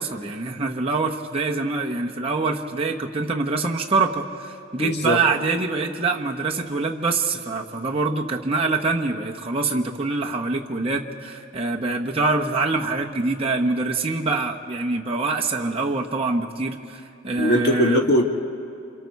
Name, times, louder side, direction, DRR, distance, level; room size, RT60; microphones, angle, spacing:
voice 1, 0.0-18.0, right 3 dB, 25° right, 0 dB, 1.1 m, -25 dB
voice 2, 4.8-5.2 17.4-18.2, left 1 dB, 50° left, 2 dB, 1.8 m, -20 dB
28.0 x 27.0 x 4.7 m, 2.6 s
head